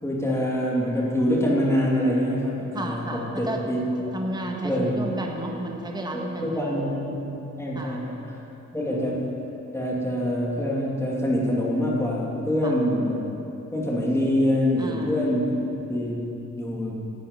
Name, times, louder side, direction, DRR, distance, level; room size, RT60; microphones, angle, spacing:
voice 1, 0.0-4.1 4.6-5.1 6.1-8.4 8.7-9.3 9.7-13.2 13.7-15.5 15.9-17.0, equal, 10° left, -4 dB, 2.6 m, -25 dB
voice 2, 2.7-3.6 4.1-6.7 7.7-8.0 8.7-9.0 12.6-12.8 14.8-15.3, right 1 dB, 15° right, 0 dB, 1.6 m, -32 dB
11.0 x 6.6 x 9.4 m, 2.9 s
cardioid pair, 90°, 30 cm